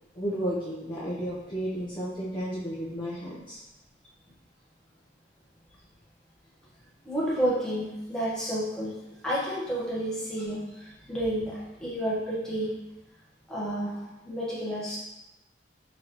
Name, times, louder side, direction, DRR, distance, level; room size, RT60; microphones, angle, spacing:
voice 1, 0.1-3.6, equal, 25° left, -9 dB, 0.6 m, -33 dB
voice 2, 7.0-8.9 9.2-12.7 13.5-15.0, right 1 dB, 5° left, -8 dB, 1.1 m, -30 dB
5.1 x 2.8 x 2.9 m, 0.97 s
head